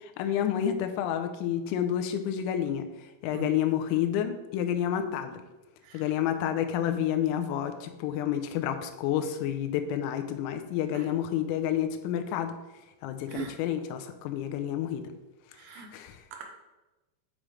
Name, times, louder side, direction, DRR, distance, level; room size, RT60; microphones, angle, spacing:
voice 1, 0.0-2.9 3.2-5.4 5.9-12.6 13.0-15.1 15.7-16.2, left 10 dB, 85° left, 7 dB, 3.3 m, -29 dB
voice 2, 15.5-15.9 16.3-16.4, right 9 dB, 85° right, 2 dB, 3.3 m, -39 dB
8.7 x 5.0 x 3.1 m, 1.1 s
omnidirectional pair, 5.9 m